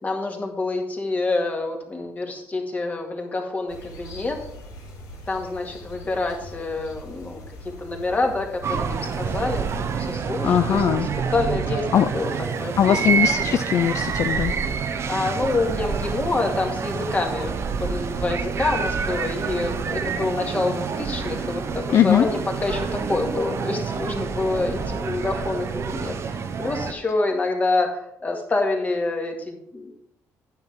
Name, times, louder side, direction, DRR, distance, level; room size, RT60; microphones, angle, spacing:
voice 1, 0.0-4.4 5.3-7.4 7.8-9.7 10.0-10.9 11.3-13.2 15.1-17.5 17.8-29.9, left 3 dB, 25° left, 2 dB, 2.0 m, -27 dB
sound 1, 3.7-10.2, left 1 dB, 85° left, 2.7 m, -42 dB
sound 2, 8.6-26.9, right 6 dB, 50° right, 0.9 m, -27 dB
voice 2, 10.4-11.1 11.9-12.1 12.8-14.5 21.9-22.3, left 9 dB, 55° left, 9 dB, 0.4 m, -20 dB
9.6 x 7.2 x 4.5 m, 0.76 s
cardioid pair, 95°, 6 cm